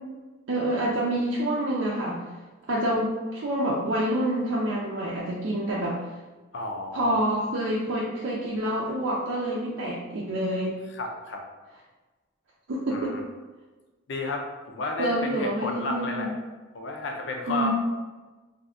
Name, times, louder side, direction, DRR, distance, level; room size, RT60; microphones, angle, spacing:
voice 1, 0.5-2.2 2.7-6.0 6.9-10.8 12.7-13.2 15.0-16.3 17.5-17.7, right 1 dB, 75° right, -5 dB, 0.5 m, -27 dB
voice 2, 6.5-7.3 10.9-11.4 12.9-13.2 14.1-16.3 16.7-17.7, left 2 dB, 70° left, 2 dB, 0.5 m, -32 dB
2.6 x 2.4 x 3.5 m, 1.2 s
head